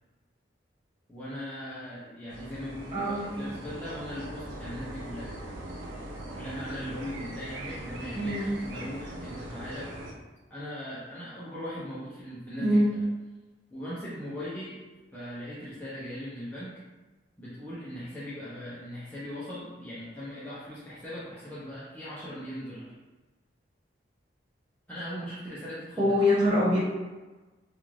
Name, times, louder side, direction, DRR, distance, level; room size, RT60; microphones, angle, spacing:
voice 1, 1.1-5.3 6.3-9.9 10.5-13.0 13.7-14.8 15.1-16.7 17.4-22.9 24.9-26.1, equal, 10° left, -11 dB, 0.5 m, -39 dB
sound 1, 2.3-10.1, right 1 dB, 90° right, 0.5 m, -41 dB
voice 2, 2.9-3.3 8.1-8.5 12.6-12.9 26.0-26.8, left 1 dB, 25° right, -10 dB, 1.1 m, -24 dB
2.5 x 2.4 x 3.1 m, 1.2 s
head